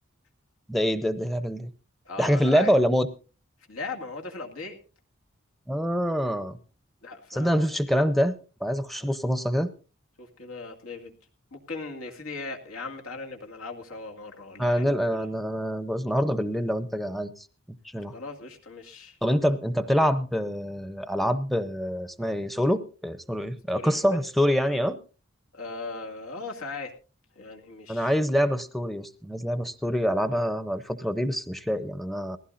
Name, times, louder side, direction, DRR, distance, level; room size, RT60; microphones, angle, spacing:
voice 1, 0.7-1.7 2.2-3.1 5.7-6.6 7.3-8.3 8.6-9.7 14.6-17.5 17.9-18.1 19.2-25.0 27.9-32.4, equal, ahead, 12 dB, 0.6 m, -25 dB
voice 2, 2.0-2.7 3.7-4.8 7.0-7.8 9.0-9.1 10.2-11.1 11.5-14.9 15.1-15.3 18.1-19.2 23.7-24.2 25.5-26.9 27.3-28.1, left 3 dB, 85° left, 2 dB, 2.2 m, -38 dB
19.5 x 15.5 x 2.6 m, 0.34 s
head